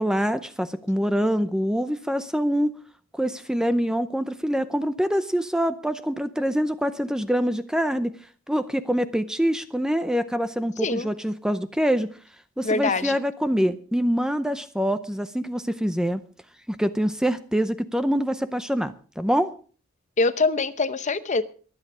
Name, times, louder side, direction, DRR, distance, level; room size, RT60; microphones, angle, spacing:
voice 1, 0.0-2.7 3.1-8.2 8.5-12.1 12.6-16.2 16.7-19.5, equal, 5° right, 11 dB, 0.6 m, -25 dB
voice 2, 12.6-13.2 20.2-21.4, left 3 dB, 35° left, 13 dB, 0.8 m, -24 dB
23.0 x 8.9 x 4.9 m, 0.41 s
head